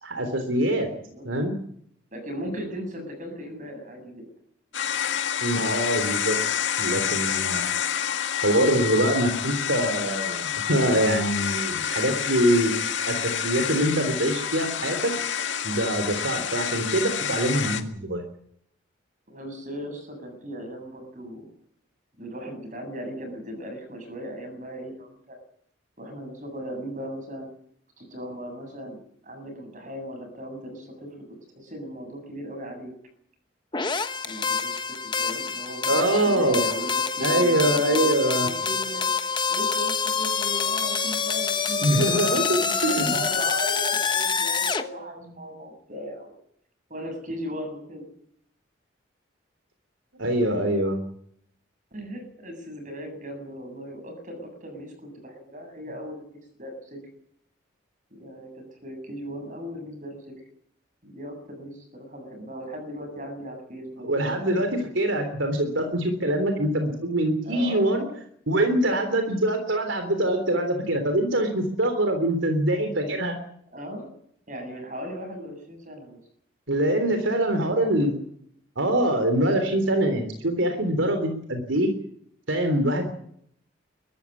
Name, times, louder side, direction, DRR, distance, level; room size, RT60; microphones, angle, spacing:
voice 1, 0.0-0.9 1.2-1.6 5.4-6.4 6.8-7.7 8.4-12.7 13.1-15.1 15.6-18.2 35.9-36.6 37.2-38.5 41.8-43.2 50.2-51.0 64.0-68.1 68.5-73.4 76.7-78.1 78.8-81.9 82.5-83.1, right 1 dB, 75° right, 6 dB, 3.5 m, -24 dB
voice 2, 2.1-4.2 19.3-21.5 22.2-25.4 26.0-27.5 28.0-29.0 29.2-31.2 31.5-32.9 34.2-46.3 46.9-48.1 51.9-57.0 58.1-60.2 61.0-64.4 67.4-68.1 73.7-74.1 74.5-76.2 77.5-78.1, equal, 40° right, 5 dB, 7.7 m, -37 dB
sound 1, 4.7-17.8, left 8 dB, 75° left, 1.9 m, -28 dB
sound 2, 33.7-44.8, left 5 dB, 25° left, 1.1 m, -26 dB
22.0 x 14.0 x 9.8 m, 0.68 s
head